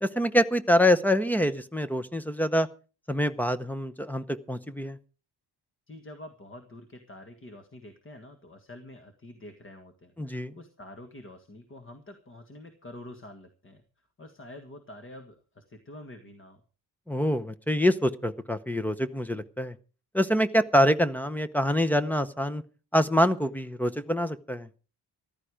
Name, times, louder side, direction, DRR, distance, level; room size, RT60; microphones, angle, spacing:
voice 1, 0.0-2.7 3.1-5.0 10.2-10.5 17.1-19.7 20.1-22.6 22.9-24.7, equal, 5° left, 13 dB, 0.7 m, -25 dB
voice 2, 5.9-13.8 14.2-16.6, left 1 dB, 30° left, 6 dB, 1.7 m, -47 dB
14.5 x 13.0 x 5.0 m, 0.37 s
wide cardioid pair, 155°, 41 cm